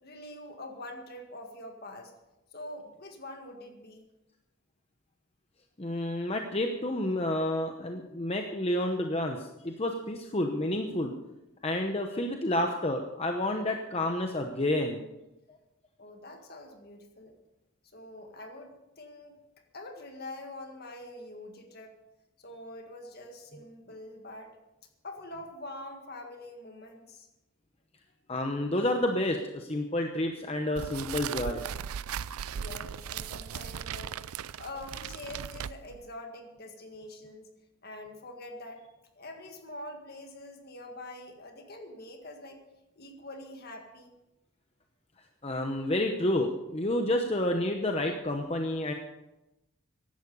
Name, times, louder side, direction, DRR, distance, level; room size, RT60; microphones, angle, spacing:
voice 1, 0.0-2.1 2.5-4.1 16.0-17.4 17.9-19.4 19.7-21.9 22.4-24.6 25.0-27.3 32.2-34.2 34.6-37.5 37.8-38.8 39.2-42.6 42.9-44.1, left 1 dB, 45° left, 4 dB, 1.8 m, -45 dB
voice 2, 5.8-11.1 11.6-15.0 28.3-31.7 45.4-48.9, left 1 dB, 25° left, 4 dB, 0.9 m, -29 dB
sound 1, 30.8-36.1, right 8 dB, 80° right, 0.4 m, -38 dB
15.5 x 11.5 x 5.4 m, 0.97 s
head